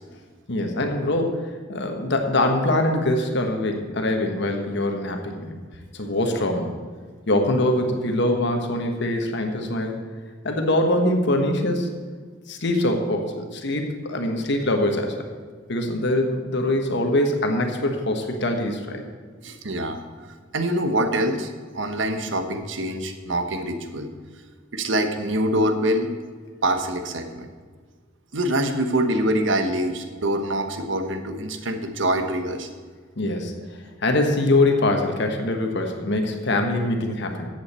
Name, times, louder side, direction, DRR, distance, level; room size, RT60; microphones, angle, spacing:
voice 1, 0.5-5.5 5.9-6.7 7.3-10.0 10.4-11.9 12.5-15.2 15.7-19.0 33.2-37.5, left 1 dB, 65° left, 4 dB, 1.3 m, -23 dB
voice 2, 19.4-20.0 20.5-21.5 21.7-24.1 24.7-26.1 26.6-27.5 28.3-32.7, right 1 dB, 70° right, 7 dB, 1.0 m, -24 dB
13.5 x 8.0 x 4.3 m, 1.5 s
head